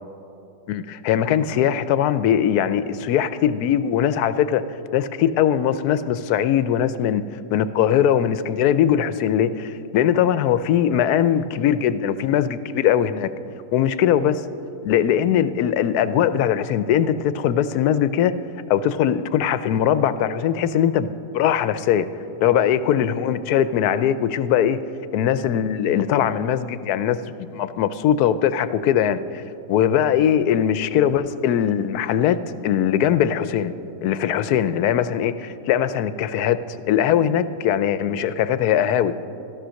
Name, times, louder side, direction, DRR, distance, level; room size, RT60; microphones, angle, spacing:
voice 1, 0.7-4.6 4.9-7.2 7.5-13.3 13.7-14.4 14.8-18.3 18.7-22.1 22.4-24.8 25.1-29.4 29.7-33.7 34.0-39.1, left 9 dB, 80° left, 14 dB, 1.1 m, -20 dB
14.5 x 12.5 x 6.3 m, 2.8 s
omnidirectional pair, 1.6 m